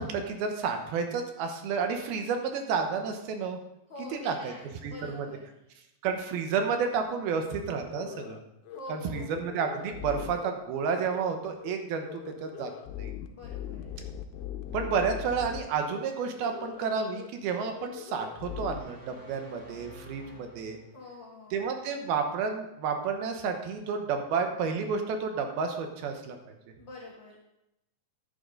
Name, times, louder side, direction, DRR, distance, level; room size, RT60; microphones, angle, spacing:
voice 1, 0.0-3.6 4.2-4.5 4.8-5.3 6.0-8.4 8.9-12.7 13.0-13.1 14.7-20.8 21.5-26.4, right 5 dB, 80° right, 5 dB, 3.0 m, -31 dB
voice 2, 3.9-5.5 8.7-9.4 13.3-13.9 20.9-21.6 26.8-27.4, left 2 dB, 65° left, -2 dB, 1.1 m, -45 dB
sound 1, 7.4-7.6 7.9-8.4 8.7-8.8 9.1-10.5 10.8-11.3 11.6-11.7 12.0-15.6 15.9-16.0 16.4-16.9 17.1-17.3 17.6-18.8, left 11 dB, 85° left, 2.5 m, -40 dB
sound 2, 18.4-21.2, equal, 45° left, 0.9 m, -50 dB
10.5 x 10.5 x 3.8 m, 0.88 s
omnidirectional pair, 4.4 m